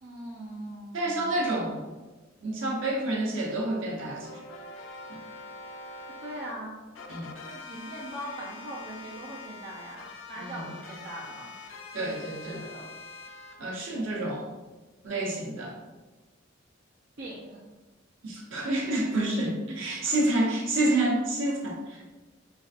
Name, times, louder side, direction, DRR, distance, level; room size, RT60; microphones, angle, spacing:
voice 1, 0.0-1.3 6.2-6.8 7.4-11.5 12.0-12.9 17.2-17.6 20.0-20.3, right 1 dB, 55° right, -6 dB, 0.6 m, -41 dB
voice 2, 0.9-1.9 2.4-4.4 5.1-5.2 7.1-7.3 10.4-10.7 11.9-12.6 13.6-14.5 15.0-15.7 18.2-22.0, right 1 dB, 90° right, -3 dB, 1.0 m, -29 dB
sound 1, 4.0-6.5 7.0-13.5, left 3 dB, 85° left, 0.5 m, -44 dB
5.3 x 2.5 x 2.5 m, 1.2 s
head